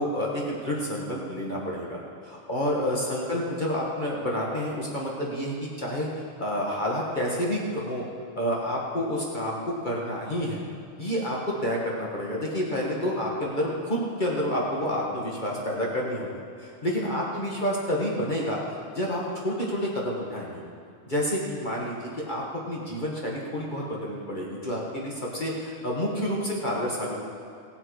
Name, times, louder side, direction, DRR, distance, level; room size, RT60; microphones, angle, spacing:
voice 1, 0.0-8.0 8.3-10.6 11.0-16.3 16.6-20.6 21.1-27.1, equal, 60° left, -3 dB, 0.5 m, -29 dB
18.0 x 7.8 x 4.7 m, 2.5 s
omnidirectional pair, 3.5 m